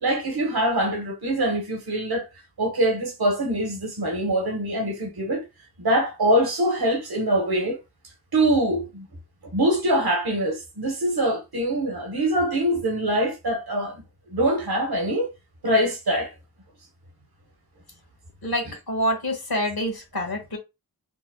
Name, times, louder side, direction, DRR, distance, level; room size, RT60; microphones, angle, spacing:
voice 1, 0.0-2.3 2.6-5.4 5.8-7.8 8.3-9.1 9.5-14.0 14.3-15.3 15.6-16.3 18.6-18.8, right 1 dB, 80° right, 1.3 m, -24 dB
voice 2, 18.4-20.6, equal, 75° left, 1.4 m, -27 dB
5.3 x 2.1 x 2.3 m
wide cardioid pair, 60°, 37 cm